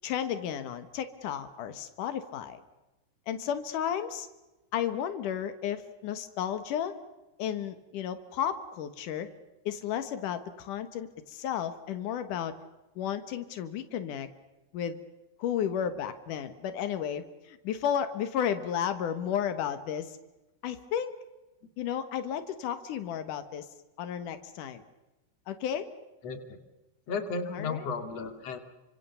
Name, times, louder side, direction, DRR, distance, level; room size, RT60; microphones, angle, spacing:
voice 1, 0.0-2.6 3.3-4.3 4.7-7.0 7.4-9.3 9.6-12.6 12.9-14.3 14.7-15.0 15.4-20.2 20.6-21.2 21.8-23.7 24.0-24.8 25.5-25.9 27.5-27.9, left 9 dB, 90° left, 9 dB, 1.8 m, -33 dB
voice 2, 26.2-26.6 27.1-28.6, left 4 dB, 40° left, 7 dB, 2.6 m, -34 dB
29.5 x 25.5 x 7.0 m, 1.0 s
omnidirectional pair, 5.9 m